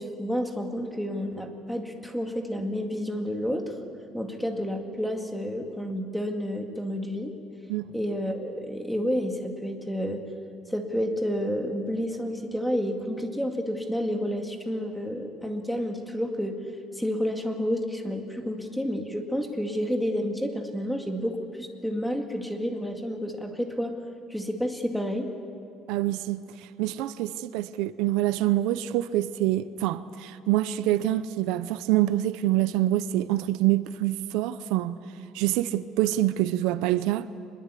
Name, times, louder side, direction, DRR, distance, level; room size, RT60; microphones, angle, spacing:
voice 1, 0.0-3.7 4.1-7.3 7.9-10.2 10.7-16.5 16.9-23.9 24.3-25.3, equal, ahead, 2.2 m, -30 dB
voice 2, 25.9-26.4 26.8-35.0 35.3-37.3, right 14 dB, 90° right, 0.8 m, -26 dB
25.0 x 22.0 x 8.4 m
cardioid pair, 165°, 0 cm